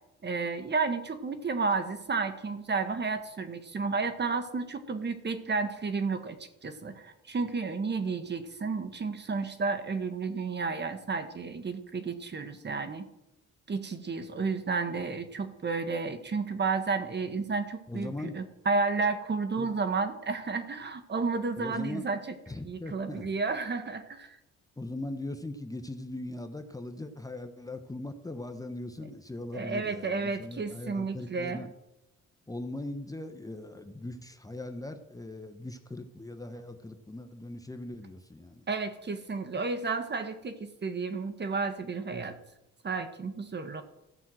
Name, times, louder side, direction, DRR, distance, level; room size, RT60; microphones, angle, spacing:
voice 1, 0.2-13.1 13.7-22.2 22.6-24.4 29.5-31.6 38.7-42.3 42.8-43.8, right 4 dB, 35° right, 9 dB, 1.3 m, -32 dB
voice 2, 17.9-18.4 19.6-19.7 21.6-22.1 22.5-23.3 24.8-31.7 32.5-38.6, left 2 dB, 10° left, 7 dB, 0.9 m, -40 dB
14.5 x 5.6 x 7.7 m, 0.93 s
cardioid pair, 90°, 30 cm